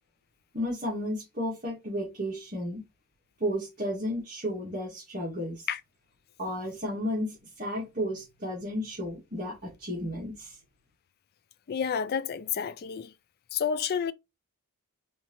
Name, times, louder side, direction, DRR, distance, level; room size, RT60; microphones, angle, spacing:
voice 1, 0.5-2.8 3.4-5.7 6.4-10.6, equal, 40° right, 1.6 m, -33 dB
voice 2, 11.7-13.1 13.5-14.1, left 7 dB, 45° left, 0.3 m, -30 dB
4.4 x 2.8 x 2.9 m
head